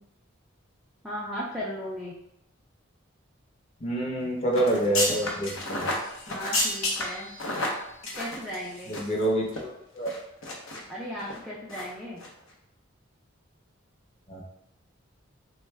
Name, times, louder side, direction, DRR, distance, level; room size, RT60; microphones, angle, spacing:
voice 1, 1.0-2.2 6.3-7.4 8.1-9.0 10.9-12.3, equal, ahead, -7 dB, 0.3 m, -36 dB
voice 2, 3.8-5.9 8.9-9.5 9.9-10.1 14.3-14.4, right 1 dB, 30° left, -2 dB, 0.7 m, -27 dB
sound 1, 4.5-9.2 9.5-9.6 10.1-10.8 11.2-11.4 11.7-11.9 12.2-12.3, left 2 dB, 85° left, 0.7 m, -31 dB
3.4 x 2.2 x 3.2 m, 0.81 s
head